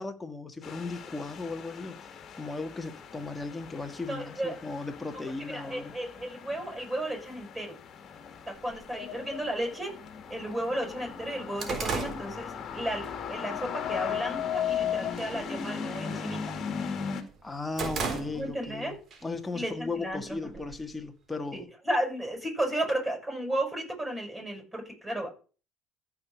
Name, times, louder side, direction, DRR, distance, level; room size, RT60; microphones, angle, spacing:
voice 1, 0.0-5.9 17.4-18.9 19.2-21.7, left 3 dB, 15° left, 1.8 m, -36 dB
sound 1, 0.6-17.2, left 6 dB, 50° left, 2.0 m, -40 dB
voice 2, 4.1-4.6 5.4-7.8 8.5-9.9 10.3-16.5 18.3-19.0 19.5-20.5 21.5-25.3, right 1 dB, 15° right, 7.2 m, -34 dB
sound 2, 8.7-8.8 9.7-9.8 10.3-10.4 10.7-13.1 13.5-13.8 14.3-14.8 15.0-15.4 15.7-16.9 17.3-18.8 19.1-19.2 20.1-21.0, right 5 dB, 50° right, 3.4 m, -35 dB
sound 3, 9.0-9.7 13.0-15.1, left 11 dB, 65° left, 0.8 m, -33 dB
14.0 x 5.1 x 6.5 m
hypercardioid pair, 65°, 0 cm